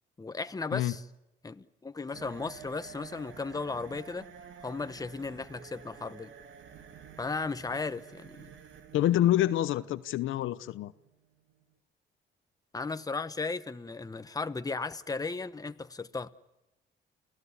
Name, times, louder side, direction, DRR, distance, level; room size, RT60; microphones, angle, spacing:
voice 1, 0.2-1.0 1.4-4.3 4.6-6.3 7.2-8.5 12.7-16.3, left 4 dB, 20° left, 1.0 m, -36 dB
sound 1, 2.1-11.7, right 7 dB, 70° right, 2.3 m, -51 dB
voice 2, 8.9-10.9, left 13 dB, 85° left, 0.8 m, -27 dB
29.5 x 15.5 x 9.7 m
cardioid pair, 90°, 20 cm